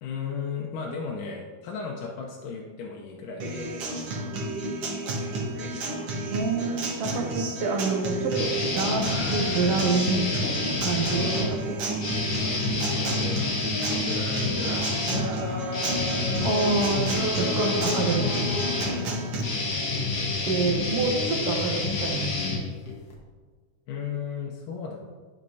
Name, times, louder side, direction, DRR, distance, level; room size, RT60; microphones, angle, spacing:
voice 1, 0.0-4.1 12.3-14.8 18.8-19.2 23.9-25.0, left 5 dB, 80° left, -2 dB, 2.3 m, -35 dB
Acoustic guitar, 3.4-19.4, right 1 dB, 60° right, 2.0 m, -31 dB
voice 2, 6.3-11.8 16.4-18.3 20.4-22.3, right 3 dB, 85° right, 2 dB, 1.3 m, -27 dB
sound 1, 8.3-11.5 12.0-23.1, left 3 dB, 55° left, 2.0 m, -29 dB
12.0 x 6.5 x 2.7 m, 1.5 s
omnidirectional pair, 3.8 m